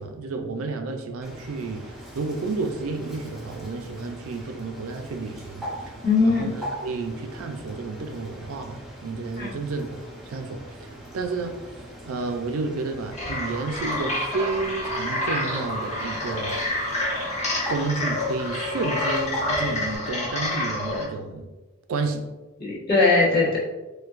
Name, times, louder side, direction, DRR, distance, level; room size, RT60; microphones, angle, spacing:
voice 1, 0.0-5.7 6.2-10.0 10.3-10.9 11.1-11.6 12.0-16.6 17.7-21.5 21.9-22.3, right 3 dB, 80° right, 5 dB, 0.4 m, -31 dB
Bird, 1.2-20.0, equal, ahead, 0.5 m, -41 dB
voice 2, 6.0-6.6 9.4-9.6 22.6-23.6, left 3 dB, 50° left, -8 dB, 1.3 m, -20 dB
sound 1, 13.1-21.0, left 1 dB, 35° left, 1.1 m, -28 dB
4.4 x 2.2 x 2.4 m, 1.2 s
head